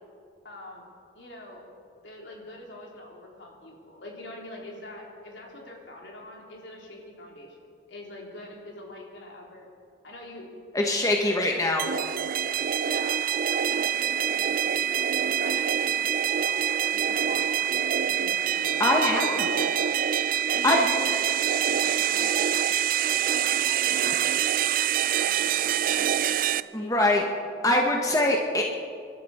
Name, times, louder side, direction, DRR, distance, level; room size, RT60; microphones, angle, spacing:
voice 1, 0.4-0.9 1.1-1.7 2.0-7.5 7.9-9.7 10.0-10.5 10.8-12.1 12.8-16.6 16.9-19.8 20.0-20.2 20.5-22.5 23.0-24.6 25.1-27.2, left 1 dB, 75° left, -2 dB, 3.6 m, -44 dB
voice 2, 10.7-11.8 18.8-19.5 20.4-20.9 24.0-24.1 26.7-27.2 27.6-28.6, left 1 dB, 20° left, 1 dB, 1.1 m, -23 dB
sound 1, 11.8-26.6, right 9 dB, 45° right, 0.3 m, -25 dB
26.0 x 12.5 x 4.3 m, 2.4 s
head